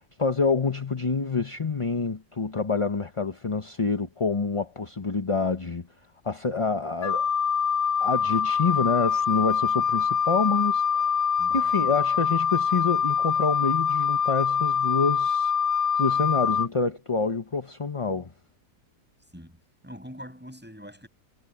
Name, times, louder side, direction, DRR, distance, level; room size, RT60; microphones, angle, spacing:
voice 1, 0.0-5.9 6.2-7.3 8.0-15.5 15.9-18.3, left 4 dB, 25° left, 0.8 m, -27 dB
Wind instrument woodwind instrument, 7.0-16.7, left 7 dB, 55° left, 0.6 m, -24 dB
voice 2, 11.4-11.7 19.3-19.6 19.8-21.1, equal, 5° right, 6.7 m, -43 dB
omnidirectional pair, 1.7 m